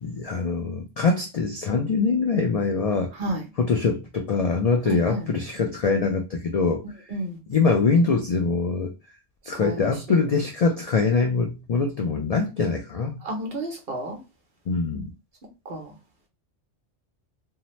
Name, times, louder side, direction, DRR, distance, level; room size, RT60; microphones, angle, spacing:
voice 1, 0.0-3.1 3.6-6.8 7.5-8.9 9.5-13.2 14.7-15.1, left 4 dB, 70° left, 0.3 m, -23 dB
voice 2, 4.8-5.3 7.1-7.4 9.6-9.8 10.1-10.2 13.2-14.2 15.7-15.9, right 1 dB, 60° right, 1.0 m, -31 dB
2.7 x 2.0 x 3.0 m
omnidirectional pair, 1.2 m